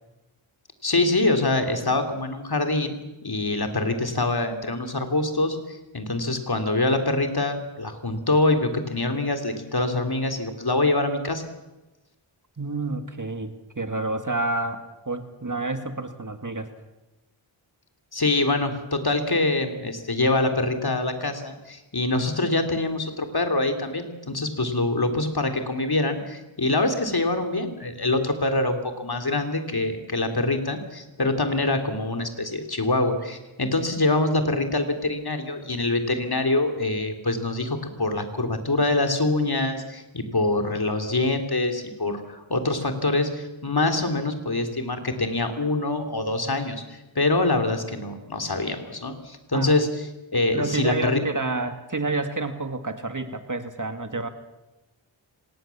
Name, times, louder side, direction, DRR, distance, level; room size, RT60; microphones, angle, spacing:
voice 1, 0.8-3.0 3.2-11.5 18.1-49.9 50.3-51.2, left 2 dB, 50° left, 6 dB, 3.5 m, -25 dB
voice 2, 12.6-16.7 34.0-34.2 49.5-49.7 50.5-54.3, right 2 dB, 35° right, 8 dB, 2.1 m, -29 dB
25.0 x 19.0 x 7.3 m, 1.1 s
cardioid pair, 45°, 49 cm